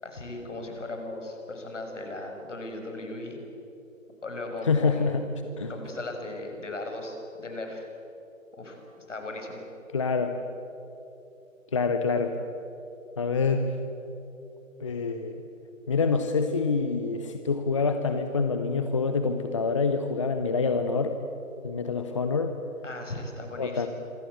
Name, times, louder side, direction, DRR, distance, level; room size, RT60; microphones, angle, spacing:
voice 1, 0.0-3.4 4.2-5.2 5.7-7.8 8.5-8.8 9.1-9.6 22.8-23.9, left 2 dB, 60° left, 4 dB, 6.3 m, -37 dB
voice 2, 4.7-5.2 5.6-5.7 9.9-10.4 11.7-12.4 13.2-13.7 14.8-15.4 15.9-21.1 21.6-22.5 23.6-23.9, left 4 dB, 25° left, 7 dB, 0.9 m, -26 dB
26.5 x 24.5 x 8.3 m, 2.9 s
figure-of-eight pair, 145°, 41 cm